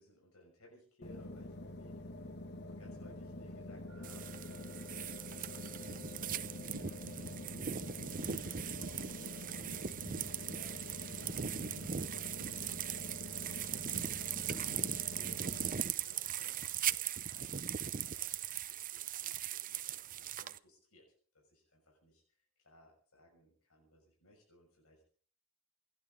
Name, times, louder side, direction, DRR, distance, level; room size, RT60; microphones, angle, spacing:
voice 1, 0.0-2.3 2.6-7.3 7.7-9.2 9.7-11.3 11.7-21.0 21.3-22.2 22.6-25.2, left 1 dB, 90° left, 0 dB, 6.1 m, -63 dB
sound 1, 1.0-15.8, left 1 dB, 50° left, 1.3 m, -46 dB
sound 2, 3.9-16.8, left 2 dB, 5° right, 3.7 m, -63 dB
sound 3, 4.0-20.6, right 9 dB, 40° right, 0.7 m, -39 dB
28.0 x 11.5 x 3.8 m, 0.44 s
head